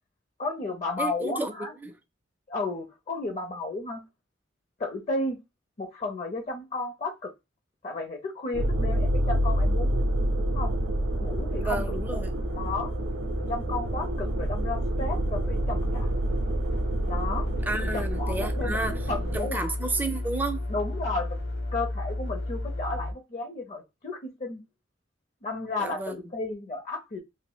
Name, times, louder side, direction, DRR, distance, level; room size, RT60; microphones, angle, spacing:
voice 1, 0.4-1.7 2.5-4.0 4.8-5.4 5.8-7.3 7.8-10.0 10.4-10.7 11.2-11.9 12.1-12.2 12.5-12.9 13.5-16.1 17.1-17.5 17.8-18.8 19.1-19.7 20.7-21.4 21.7-24.6 25.4-27.2, left 3 dB, 40° left, 0.5 m, -33 dB
voice 2, 1.0-2.0 11.6-12.3 17.7-20.7 25.8-26.2, right 2 dB, 10° right, 0.4 m, -32 dB
sound 1, 8.5-19.4, right 1 dB, 85° right, 0.4 m, -28 dB
sound 2, 9.5-23.1, left 2 dB, 65° left, 0.9 m, -34 dB
2.5 x 2.0 x 3.8 m
head